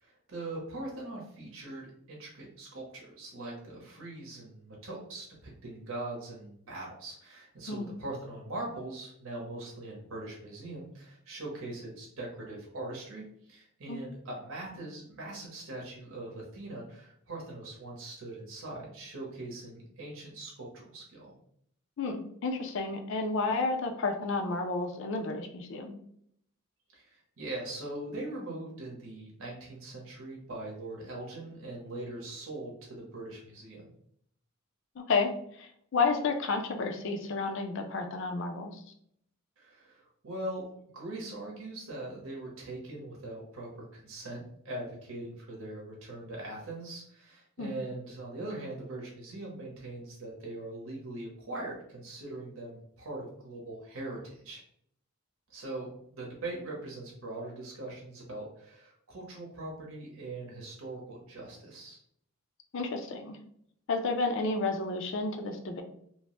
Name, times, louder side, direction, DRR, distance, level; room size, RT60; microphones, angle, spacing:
voice 1, 0.0-21.3 26.9-33.8 39.6-40.7 40.9-54.6 55.5-62.0, right 2 dB, 65° right, -3 dB, 0.8 m, -41 dB
voice 2, 22.0-26.0 35.0-35.3 35.6-38.8 47.6-47.7 62.7-63.4 63.9-65.8, left 3 dB, 55° left, 5 dB, 0.4 m, -31 dB
2.9 x 2.0 x 3.0 m, 0.68 s
head